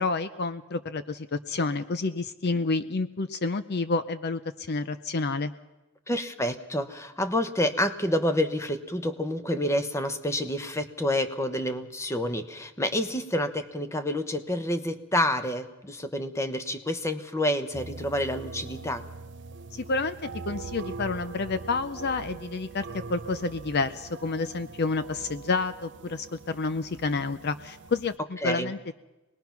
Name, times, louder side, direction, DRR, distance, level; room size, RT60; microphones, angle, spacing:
voice 1, 0.0-5.5 19.7-28.9, left 3 dB, 50° left, 12 dB, 0.6 m, -29 dB
voice 2, 6.1-19.0 28.4-28.7, left 1 dB, 15° left, 9 dB, 1.1 m, -28 dB
sound 1, 17.7-28.2, right 4 dB, 55° right, 0.7 m, -42 dB
25.0 x 20.0 x 5.9 m, 1.0 s
head